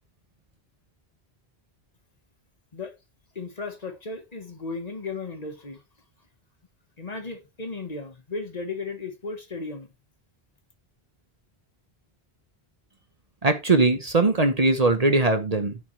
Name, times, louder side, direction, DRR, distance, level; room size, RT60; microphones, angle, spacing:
voice 1, 3.3-5.8 7.0-9.9, left 3 dB, 40° left, 1.3 m, -35 dB
voice 2, 13.4-15.8, right 2 dB, 40° right, 1.0 m, -21 dB
9.1 x 7.4 x 3.1 m
omnidirectional pair, 1.1 m